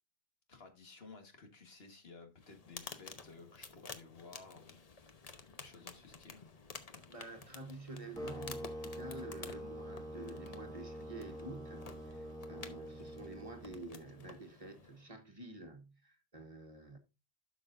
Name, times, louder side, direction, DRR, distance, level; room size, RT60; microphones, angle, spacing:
voice 1, 0.5-4.8 5.6-6.4, left 4 dB, 70° left, 1.8 m, -55 dB
sound 1, 2.4-15.1, left 4 dB, 40° left, 0.9 m, -52 dB
voice 2, 7.1-17.0, right 2 dB, 35° right, 1.2 m, -49 dB
sound 2, 8.2-14.2, equal, 5° left, 1.4 m, -46 dB
12.0 x 6.1 x 2.6 m
omnidirectional pair, 1.1 m